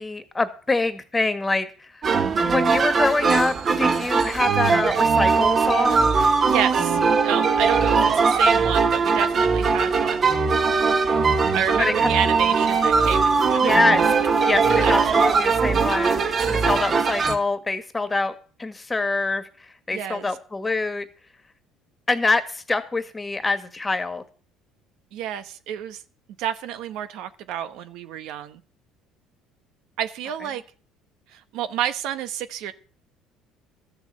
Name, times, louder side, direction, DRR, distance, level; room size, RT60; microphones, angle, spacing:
voice 1, 0.0-2.2 2.5-6.1 11.8-12.1 13.6-14.0 14.5-19.5 19.9-21.1 22.1-24.2, left 3 dB, 15° left, 1.7 m, -25 dB
sound 1, 2.0-17.4, right 5 dB, 35° right, 1.5 m, -20 dB
voice 2, 2.3-2.6 6.4-10.3 11.1-14.0 14.4-14.9 19.9-20.3 25.1-26.0 26.4-28.6 30.0-30.6 31.3-32.7, right 10 dB, 75° right, 1.1 m, -30 dB
13.5 x 6.9 x 7.6 m
cardioid pair, 110°, 0 cm